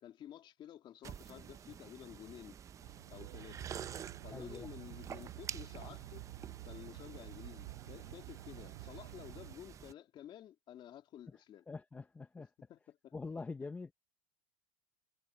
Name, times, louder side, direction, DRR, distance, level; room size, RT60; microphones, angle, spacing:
voice 1, 0.0-2.6 3.1-3.7 4.2-6.3 6.6-11.6 12.7-13.1, left 11 dB, 35° left, 2.5 m, -52 dB
sound 1, 1.0-9.9, right 8 dB, 20° right, 0.6 m, -49 dB
Aircraft, 2.8-9.5, right 18 dB, 80° right, 4.8 m, -50 dB
voice 2, 4.3-4.7 11.7-12.5 13.1-13.9, left 4 dB, 10° left, 0.8 m, -44 dB
supercardioid pair, 145°, 15 cm